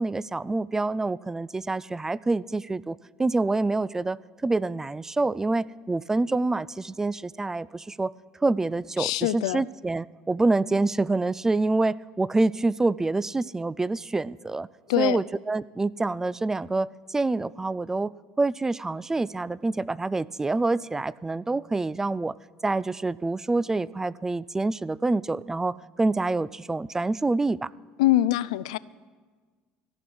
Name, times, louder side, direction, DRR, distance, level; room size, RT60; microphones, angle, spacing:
voice 1, 0.0-8.1 8.4-14.7 15.0-18.1 18.4-22.3 22.6-27.7, right 3 dB, 15° right, 21 dB, 0.3 m, -26 dB
voice 2, 9.0-9.6 14.9-15.2 28.0-28.8, left 15 dB, 85° left, 18 dB, 0.4 m, -23 dB
14.0 x 6.1 x 10.0 m, 1.5 s
hypercardioid pair, 85°, 3 cm